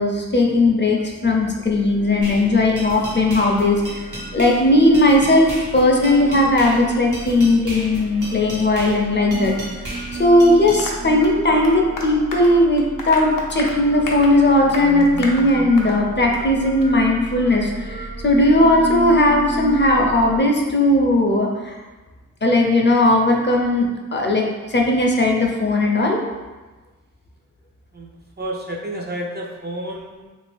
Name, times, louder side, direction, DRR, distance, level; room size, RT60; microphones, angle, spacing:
voice 1, 0.0-9.5 10.2-21.7 22.4-26.2, left 1 dB, 35° left, 0 dB, 0.6 m, -17 dB
sound 1, 1.6-20.4, right 3 dB, 80° right, 0.5 m, -33 dB
sound 2, 2.2-10.8, right 1 dB, 65° right, 1.3 m, -34 dB
Applause, 10.8-16.0 16.3-16.5 16.8-16.9 17.3-17.4, left 2 dB, 85° left, 0.6 m, -33 dB
voice 2, 28.4-30.3, right 1 dB, 30° right, -1 dB, 0.5 m, -30 dB
2.8 x 2.6 x 3.4 m, 1.2 s
cardioid pair, 55°, 32 cm